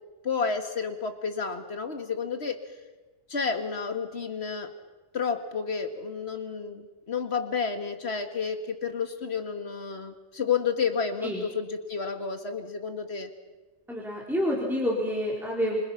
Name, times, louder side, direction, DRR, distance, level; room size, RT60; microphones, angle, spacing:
voice 1, 0.2-2.6 3.3-4.7 5.1-13.3, left 5 dB, 55° left, 6 dB, 2.2 m, -31 dB
voice 2, 13.9-15.8, equal, ahead, -3 dB, 4.4 m, -28 dB
26.0 x 26.0 x 5.9 m, 1.2 s
omnidirectional pair, 1.4 m